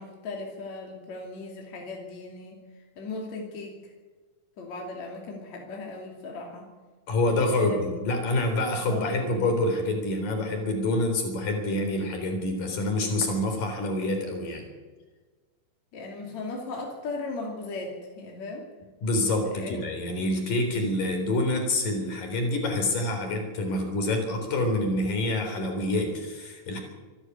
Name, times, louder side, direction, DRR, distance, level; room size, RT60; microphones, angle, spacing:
voice 1, 0.0-2.6 3.0-3.8 4.6-6.7 7.5-7.8 8.9-9.5 15.9-18.7 19.5-19.8, left 3 dB, 55° left, 0 dB, 4.0 m, -37 dB
voice 2, 7.1-14.6 19.0-26.8, left 2 dB, 75° left, 4 dB, 5.4 m, -27 dB
25.5 x 11.5 x 9.5 m, 1.3 s
omnidirectional pair, 3.9 m